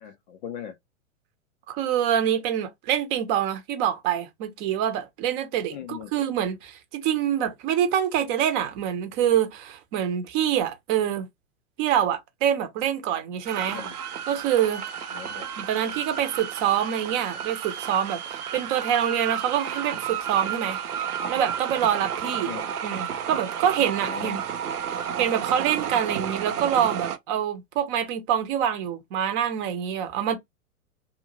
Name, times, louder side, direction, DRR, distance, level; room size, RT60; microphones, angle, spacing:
voice 1, 0.0-0.8 5.7-6.1 13.7-13.9 15.1-15.5 22.5-22.6 24.1-24.4, left 9 dB, 35° left, 0.4 m, -38 dB
voice 2, 1.7-11.3 11.8-13.8 14.3-14.8 15.6-20.8 21.3-22.5 22.8-24.4 25.2-30.4, right 9 dB, 35° right, 0.8 m, -25 dB
sound 1, 13.4-27.2, right 8 dB, 85° right, 0.6 m, -32 dB
2.5 x 2.4 x 3.0 m
hypercardioid pair, 105°, 44 cm